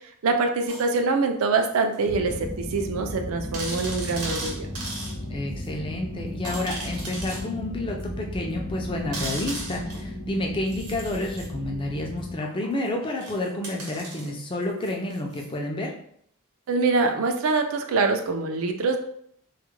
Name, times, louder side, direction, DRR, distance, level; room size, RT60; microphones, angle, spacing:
voice 1, 0.2-4.7 16.7-19.0, right 3 dB, 65° right, 5 dB, 0.4 m, -24 dB
sound 1, 0.7-1.0 1.9-2.0 2.5-2.6 2.8-2.9 3.5-5.1 5.6-5.7 6.4-7.5 8.0-8.1 9.1-10.1 10.7-11.5 12.4-15.5 17.3-17.5, right 2 dB, 80° right, 0.8 m, -37 dB
sound 2, 2.1-12.4, left 1 dB, 60° left, 0.7 m, -35 dB
voice 2, 5.3-15.9, left 1 dB, 20° left, 1 dB, 0.4 m, -30 dB
2.3 x 2.1 x 3.0 m, 0.67 s
head